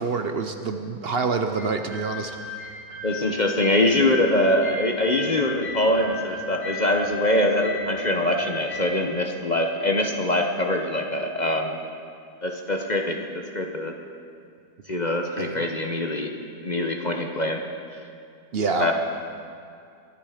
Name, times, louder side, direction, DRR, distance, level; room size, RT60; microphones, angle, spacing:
voice 1, 0.0-2.3 15.4-15.6 18.5-18.9, right 4 dB, 60° right, 6 dB, 0.6 m, -26 dB
sound 1, 1.5-8.8, left 2 dB, 80° right, 6.0 m, -36 dB
voice 2, 3.0-11.8 12.4-13.9 14.9-16.4 16.6-17.6 18.8-18.9, left 1 dB, 35° left, 3 dB, 0.7 m, -23 dB
24.0 x 10.5 x 5.0 m, 2.4 s
omnidirectional pair, 1.8 m